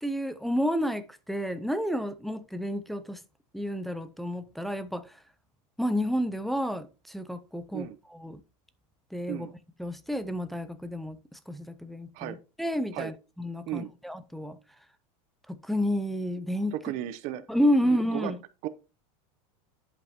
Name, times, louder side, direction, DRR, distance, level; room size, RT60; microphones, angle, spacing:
voice 1, 0.0-3.2 3.5-5.2 5.8-8.4 9.1-9.5 9.8-14.6 15.5-16.7 17.5-18.4, equal, ahead, 0.4 m, -30 dB
voice 2, 16.7-17.5 17.8-18.3 18.6-18.7, right 13 dB, 45° right, 0.6 m, -35 dB
10.5 x 5.4 x 2.8 m
supercardioid pair, 155°, 18 cm